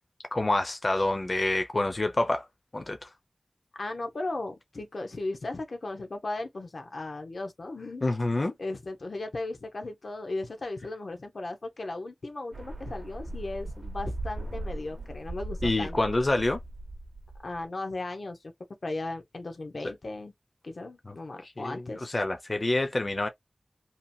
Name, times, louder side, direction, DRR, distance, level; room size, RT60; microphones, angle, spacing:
voice 1, 0.3-2.5 2.7-3.1 8.0-8.5 15.6-16.6 21.1-21.2 21.4-23.3, left 2 dB, 45° left, 0.5 m, -27 dB
voice 2, 3.7-16.0 17.4-18.5 18.8-20.3 20.6-22.1, left 2 dB, 80° left, 0.7 m, -36 dB
sound 1, 12.5-17.6, right 1 dB, 60° right, 0.5 m, -38 dB
2.8 x 2.2 x 2.6 m
wide cardioid pair, 75°, 0 cm